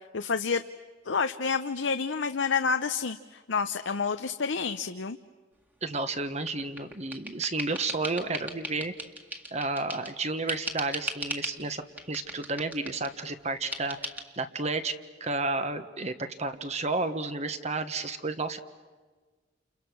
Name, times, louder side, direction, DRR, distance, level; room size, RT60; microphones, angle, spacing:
voice 1, 0.1-0.6 1.0-5.2, left 5 dB, 80° left, 9 dB, 0.8 m, -29 dB
voice 2, 5.8-8.9 9.5-11.8 12.1-14.0 14.4-14.9 15.2-18.6, right 3 dB, 35° right, 9 dB, 1.4 m, -31 dB
sound 1, 6.5-10.2 10.5-11.6 12.0-13.1 13.7-14.2, right 1 dB, 10° right, 1.9 m, -38 dB
29.5 x 29.5 x 6.3 m, 1.3 s
head